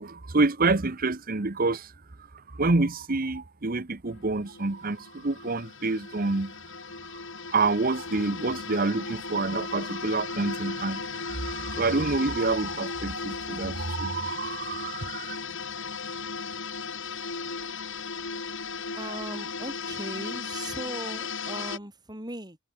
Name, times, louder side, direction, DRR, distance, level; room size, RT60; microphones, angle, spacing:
voice 1, 0.0-1.9 2.5-6.5 7.4-15.4, right 3 dB, 40° right, 1.0 m, -27 dB
sound 1, 4.1-21.8, left 5 dB, 60° left, 6.0 m, -36 dB
voice 2, 18.9-22.6, right 1 dB, 20° right, 6.6 m, -38 dB
head